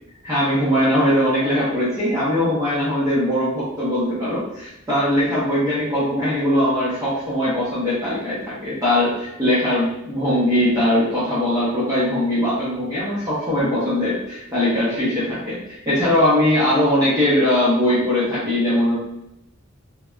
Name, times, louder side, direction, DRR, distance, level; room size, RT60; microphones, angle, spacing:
voice 1, 0.2-19.0, left 1 dB, 15° right, -10 dB, 0.6 m, -20 dB
3.0 x 2.1 x 2.3 m, 0.83 s
head